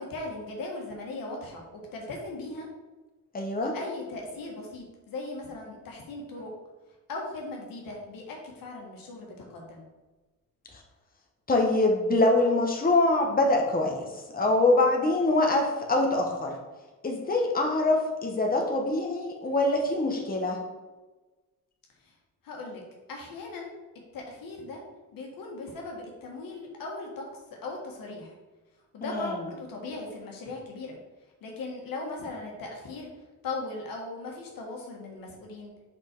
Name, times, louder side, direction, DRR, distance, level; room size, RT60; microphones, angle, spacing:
voice 1, 0.0-2.7 3.6-6.5 7.1-9.8 22.0-22.1 22.4-22.8 23.1-23.7 24.1-24.8 25.1-27.2 27.5-28.3 28.9-31.0 31.4-33.1 33.4-35.7, left 2 dB, 85° left, -1 dB, 1.7 m, -38 dB
voice 2, 3.3-3.7 11.5-14.1 14.3-16.6 17.0-20.6 29.0-29.4, left 2 dB, 25° left, 1 dB, 1.2 m, -24 dB
5.6 x 5.4 x 4.5 m, 1.2 s
cardioid pair, 95°, 34 cm